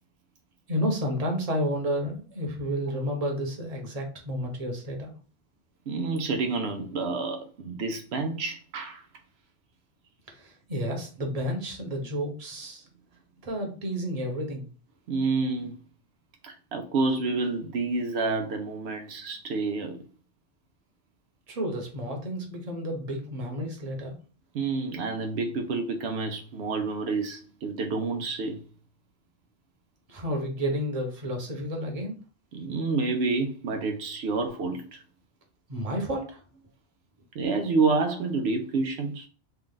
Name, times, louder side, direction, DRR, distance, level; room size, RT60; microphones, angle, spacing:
voice 1, 0.7-5.2 10.3-12.8 13.4-14.7 21.5-24.2 30.1-32.2 35.7-36.4, equal, 40° right, 1.0 m, -31 dB
voice 2, 5.9-9.0 15.1-15.7 16.4-20.0 24.5-28.6 32.5-35.0 37.3-39.3, right 3 dB, 80° right, 0.8 m, -29 dB
3.2 x 2.4 x 3.7 m
omnidirectional pair, 1.1 m